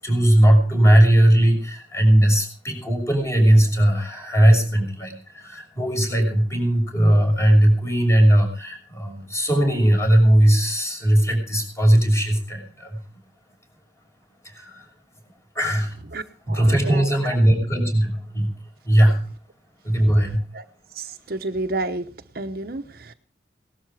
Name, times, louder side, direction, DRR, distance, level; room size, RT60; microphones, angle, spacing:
voice 1, 0.0-13.0 14.4-14.9 15.5-15.9 16.5-18.5 18.8-19.2 19.8-20.4, right 1 dB, 15° left, 2 dB, 6.3 m, -18 dB
voice 2, 16.1-17.1 20.5-20.6 20.9-23.1, right 2 dB, 55° right, 7 dB, 1.0 m, -31 dB
18.5 x 12.5 x 4.8 m, 0.37 s
head